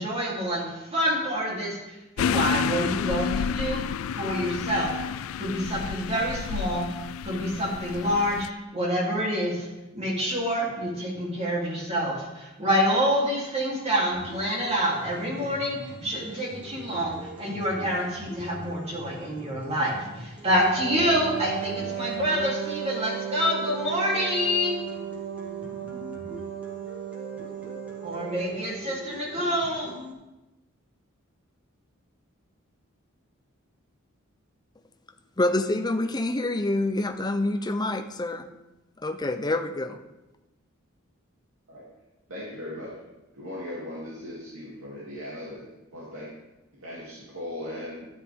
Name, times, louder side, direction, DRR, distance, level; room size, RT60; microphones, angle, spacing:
voice 1, 0.0-1.8 2.2-3.8 4.1-4.9 5.4-6.9 7.2-8.5 8.7-9.7 9.9-24.8 28.0-29.9, equal, 30° right, 3.3 m, -27 dB
sound 1, 2.2-8.5, left 7 dB, 80° left, 0.3 m, -30 dB
sound 2, 14.1-30.1, equal, 5° right, 2.0 m, -43 dB
Wind instrument woodwind instrument, 20.8-28.9, right 11 dB, 60° right, 0.7 m, -35 dB
voice 2, 35.4-38.5 39.0-40.0, left 2 dB, 20° left, 0.6 m, -27 dB
voice 3, 42.3-42.9 43.3-46.3 46.7-48.1, left 1 dB, 85° right, 2.8 m, -38 dB
13.0 x 9.9 x 3.6 m
head